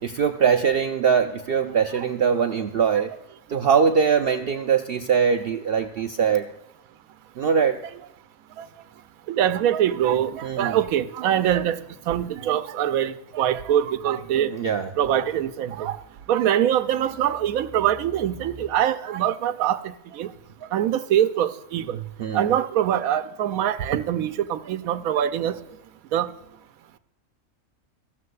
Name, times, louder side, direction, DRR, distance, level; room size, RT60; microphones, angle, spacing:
voice 1, 0.0-3.1 3.5-6.5 7.4-7.8 10.4-10.8 14.5-14.9 22.2-22.5, right 6 dB, 65° right, 0.6 m, -22 dB
voice 2, 1.6-2.1 8.6-8.7 9.3-11.8 12.1-14.5 15.0-16.0 16.3-19.8 20.1-20.3 20.7-22.0 22.3-25.6 26.1-26.3, right 10 dB, 90° right, 1.0 m, -23 dB
sound 1, 11.5-14.2 16.7-18.7, equal, 15° left, 3.5 m, -48 dB
15.0 x 13.0 x 2.3 m
omnidirectional pair, 1.4 m